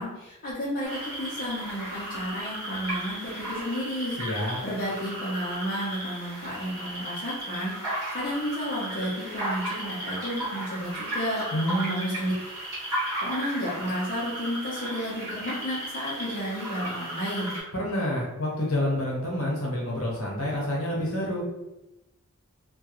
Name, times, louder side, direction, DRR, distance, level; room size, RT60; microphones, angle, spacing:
voice 1, 0.0-11.4 11.9-12.3 12.9-17.5, equal, 40° left, -7 dB, 0.6 m, -32 dB
sound 1, 0.8-17.6, right 1 dB, 15° right, 1.2 m, -35 dB
voice 2, 4.2-4.6 11.5-12.2 17.7-21.4, left 1 dB, 70° left, -4 dB, 0.9 m, -28 dB
2.3 x 2.2 x 2.9 m, 0.97 s
head